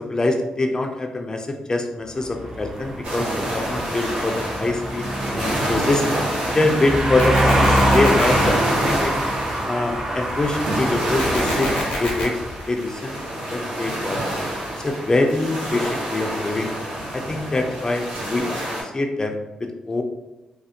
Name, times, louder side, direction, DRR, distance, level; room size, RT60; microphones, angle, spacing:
voice 1, 0.0-5.1 5.3-6.0 6.5-9.1 9.7-11.7 12.0-12.4 12.7-14.2 14.8-16.7 17.1-20.0, left 2 dB, 30° left, 4 dB, 0.4 m, -24 dB
sound 1, 2.3-12.6, right 1 dB, 35° right, 0.6 m, -24 dB
sound 2, 3.0-18.8, right 1 dB, 65° right, 0.9 m, -28 dB
sound 3, 7.2-8.2 11.2-12.2, left 1 dB, 85° left, 0.7 m, -29 dB
2.4 x 2.0 x 2.7 m, 1.0 s
cardioid pair, 70°, 2 cm